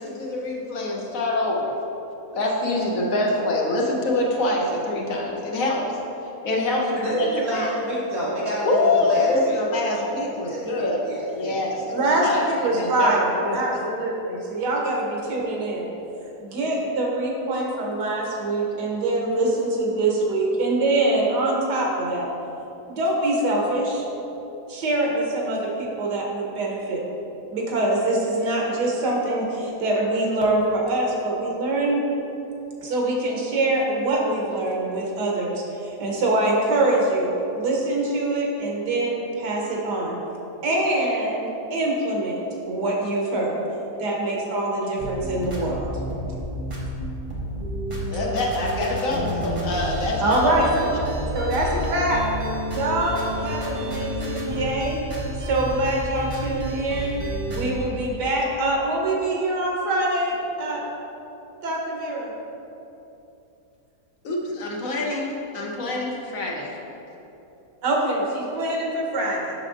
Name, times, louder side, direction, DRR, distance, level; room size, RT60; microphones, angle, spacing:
voice 1, 0.0-1.7 2.3-5.8 6.4-7.7 8.6-11.0 11.3-13.1 13.4-13.8 48.1-50.6 64.2-66.8, left 2 dB, 60° left, -2 dB, 1.1 m, -25 dB
voice 2, 7.0-9.6 9.9-10.1 10.5-11.8, right 1 dB, 60° right, -8 dB, 1.9 m, -29 dB
voice 3, 11.9-15.9 16.4-22.3 22.9-24.1 24.7-27.0 27.5-32.0 32.8-40.2 40.6-43.6 44.0-45.9 50.2-50.9 51.3-52.2 52.7-55.0 55.4-57.2 57.5-60.9 61.6-62.3 67.8-69.5, right 2 dB, 85° right, -2 dB, 1.6 m, -24 dB
sound 1, 45.0-57.8, equal, 30° right, 0.6 m, -30 dB
7.4 x 6.1 x 2.5 m, 3.0 s
omnidirectional pair, 1.7 m